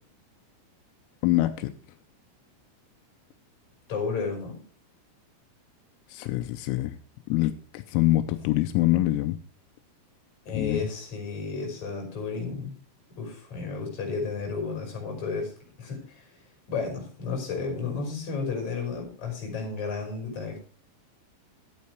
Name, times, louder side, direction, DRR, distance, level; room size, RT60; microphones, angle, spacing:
voice 1, 1.2-1.7 6.1-7.0 7.3-9.4 10.5-10.9, left 16 dB, 85° left, 8 dB, 3.6 m, -25 dB
voice 2, 3.9-4.6 10.5-12.7 13.2-15.5 15.8-16.3 16.7-20.6, left 4 dB, 35° left, 2 dB, 6.3 m, -32 dB
13.0 x 8.6 x 4.7 m, 0.40 s
omnidirectional pair, 6.0 m